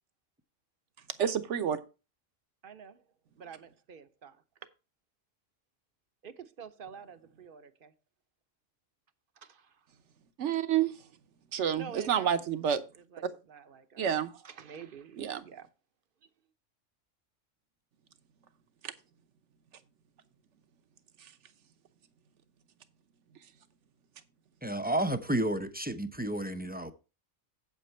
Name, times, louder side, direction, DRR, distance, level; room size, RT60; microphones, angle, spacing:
voice 1, 1.2-1.8 10.4-11.0 11.5-12.8 14.0-14.3 15.2-15.5 18.8-18.9 21.2-21.3, right 9 dB, 70° right, 1.2 m, -29 dB
voice 2, 2.6-3.0 3.4-4.4 6.2-7.9 9.4-9.9 11.7-12.4 13.1-14.1 14.4-15.7 16.2-16.3, right 6 dB, 50° right, 0.9 m, -48 dB
voice 3, 24.6-26.9, right 1 dB, 10° right, 0.5 m, -31 dB
8.4 x 8.1 x 4.4 m
omnidirectional pair, 1.3 m